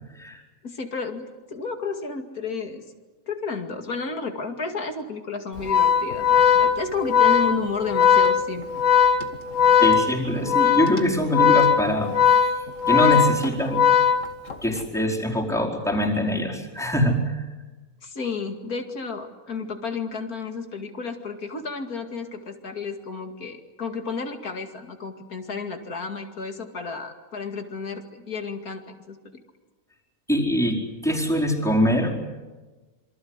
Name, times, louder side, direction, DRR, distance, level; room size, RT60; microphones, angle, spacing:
voice 1, 0.6-2.8 3.3-8.7 18.0-29.4, left 4 dB, 70° left, 5 dB, 2.8 m, -32 dB
Organ, 5.6-14.7, left 8 dB, 55° left, 2.0 m, -19 dB
voice 2, 9.8-13.8 14.6-17.5 30.3-32.1, equal, ahead, -1 dB, 4.6 m, -24 dB
27.0 x 24.5 x 8.1 m, 1.2 s
omnidirectional pair, 1.6 m